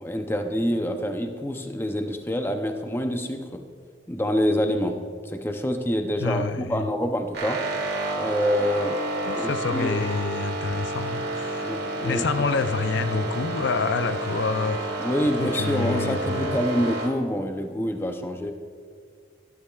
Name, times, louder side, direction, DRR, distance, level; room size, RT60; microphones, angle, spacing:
voice 1, 0.0-3.6 4.1-5.0 5.2-7.6 8.2-9.0 9.3-9.9 11.6-12.3 15.0-18.5, equal, 10° left, 5 dB, 0.5 m, -26 dB
voice 2, 6.2-6.9 9.2-11.7 12.0-14.9 15.3-16.6, left 4 dB, 75° left, 11 dB, 0.4 m, -27 dB
sound 1, 7.3-17.1, right 2 dB, 60° right, 1.7 m, -30 dB
12.5 x 12.0 x 2.3 m, 2.1 s
head